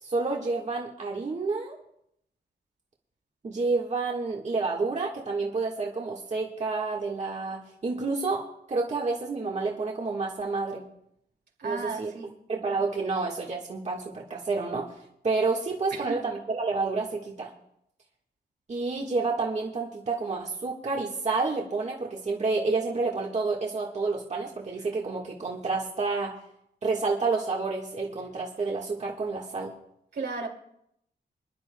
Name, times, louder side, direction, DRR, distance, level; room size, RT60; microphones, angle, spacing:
voice 1, 0.0-1.8 3.4-8.4 8.7-10.8 11.6-12.1 12.5-17.5 18.7-26.3 26.8-29.7, right 3 dB, 40° right, -2 dB, 1.5 m, -29 dB
voice 2, 11.6-12.3 15.9-16.2 30.1-30.5, right 4 dB, 75° right, 1 dB, 2.5 m, -34 dB
26.5 x 11.0 x 2.2 m, 0.75 s
wide cardioid pair, 150°, 18 cm